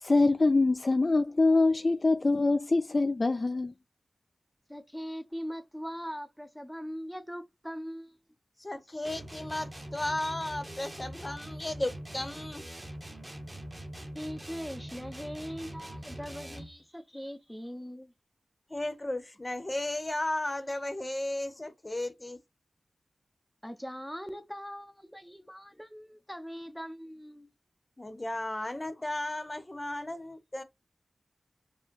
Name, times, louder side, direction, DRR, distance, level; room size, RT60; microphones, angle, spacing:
voice 1, 0.0-3.7, left 3 dB, 40° left, 0.4 m, -24 dB
voice 2, 4.7-8.2 14.1-18.1 23.6-27.5, equal, ahead, 0.7 m, -41 dB
voice 3, 8.6-12.6 18.7-22.4 28.0-30.6, left 1 dB, 25° left, 0.9 m, -34 dB
sound 1, 9.0-16.8, right 1 dB, 20° right, 1.1 m, -43 dB
5.1 x 2.2 x 3.8 m
wide cardioid pair, 75°, 0 cm